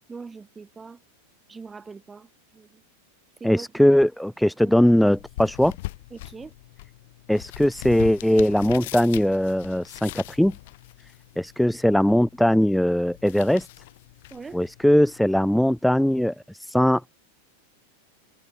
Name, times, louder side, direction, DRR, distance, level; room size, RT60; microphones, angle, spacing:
voice 1, 0.1-1.0 1.5-2.8 3.4-3.7 4.6-4.8 6.1-6.5 14.3-14.6, right 4 dB, 15° right, 3.4 m, -42 dB
voice 2, 3.4-5.8 7.3-10.5 11.4-13.7 14.5-17.0, equal, ahead, 0.5 m, -20 dB
sound 1, 4.6-15.6, left 19 dB, 50° left, 5.4 m, -42 dB
figure-of-eight pair, 90°, 0 cm